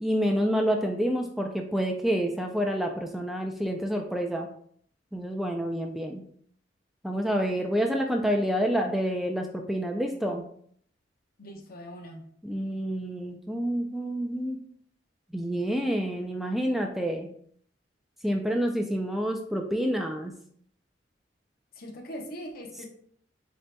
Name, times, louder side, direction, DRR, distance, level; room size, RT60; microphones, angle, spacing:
voice 1, 0.0-4.5 5.1-6.2 7.0-10.4 12.4-14.6 15.3-17.3 18.2-20.3, equal, ahead, 2 dB, 0.3 m, -28 dB
voice 2, 11.4-12.3 21.7-22.9, equal, 55° left, 2 dB, 0.9 m, -41 dB
8.0 x 2.8 x 2.2 m, 0.63 s
head